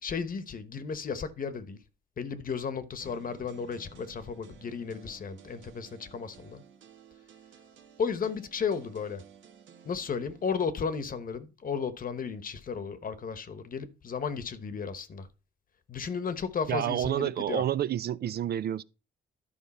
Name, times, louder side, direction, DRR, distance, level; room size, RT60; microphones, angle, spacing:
voice 1, 0.0-1.8 2.2-6.6 8.0-9.2 9.8-15.3 15.9-17.6, left 6 dB, 45° left, 1.0 m, -34 dB
sound 1, 3.0-10.6, right 8 dB, 70° right, 1.2 m, -55 dB
voice 2, 16.7-18.8, right 11 dB, 55° right, 0.4 m, -29 dB
11.5 x 5.1 x 4.2 m
cardioid pair, 90°, 20 cm